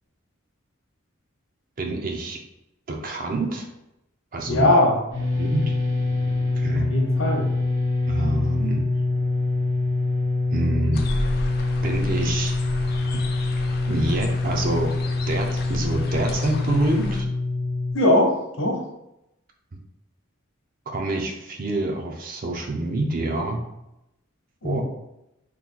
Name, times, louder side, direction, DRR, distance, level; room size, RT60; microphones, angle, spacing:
voice 1, 1.8-2.4 2.9-3.7 4.3-4.7 5.4-5.8 6.6-6.9 8.1-8.9 10.5-11.1 11.8-12.6 13.9-15.0 15.3-17.3 20.9-23.7 24.6-24.8, right 2 dB, 40° right, 2 dB, 0.5 m, -26 dB
voice 2, 4.5-5.0 6.9-7.4 17.9-18.8 24.6-24.8, left 1 dB, 75° left, -1 dB, 0.8 m, -20 dB
sound 1, 5.1-17.9, left 3 dB, 70° right, 1.2 m, -25 dB
sound 2, 10.9-17.2, left 1 dB, 50° left, 0.4 m, -33 dB
3.0 x 2.3 x 3.6 m, 0.87 s
head